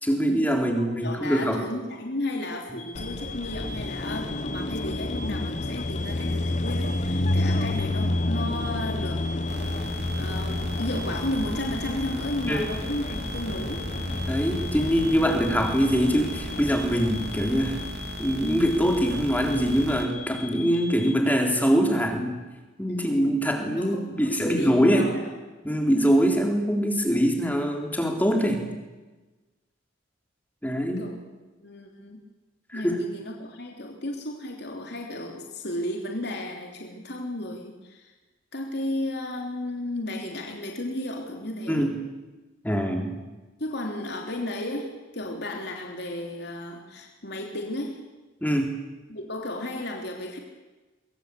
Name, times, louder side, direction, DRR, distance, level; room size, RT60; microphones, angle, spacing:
voice 1, 0.0-1.6 12.5-12.7 14.3-17.8 18.2-22.4 22.8-25.1 25.6-28.6 30.6-31.1 32.7-33.0 41.7-41.9 42.6-43.2 48.4-48.8, equal, 10° left, 3 dB, 3.7 m, -23 dB
voice 2, 0.8-14.1 22.9-23.3 23.8-25.2 31.0-31.1 31.6-32.2 32.7-38.1 38.5-41.9 43.6-48.0 49.1-50.4, left 1 dB, 60° left, 2 dB, 3.2 m, -34 dB
sound 1, 2.8-21.0, left 5 dB, 90° left, 6.1 m, -42 dB
Car passing by, 2.9-17.9, left 1 dB, 40° left, 0.9 m, -30 dB
sound 2, 9.5-20.1, right 1 dB, 60° right, 3.4 m, -37 dB
24.0 x 23.0 x 8.4 m, 1.2 s
head